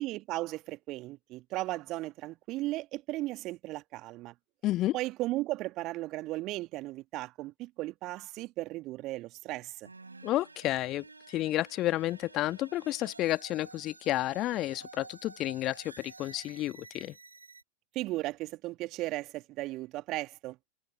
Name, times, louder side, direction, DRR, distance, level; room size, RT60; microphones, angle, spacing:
voice 1, 0.0-4.3 4.9-9.9 17.9-20.6, right 18 dB, 40° right, 1.9 m, -36 dB
voice 2, 4.6-5.0 10.2-17.2, left 15 dB, 35° left, 1.7 m, -31 dB
sound 1, 9.8-17.6, right 3 dB, 80° right, 3.4 m, -51 dB
figure-of-eight pair, 90°, 0 cm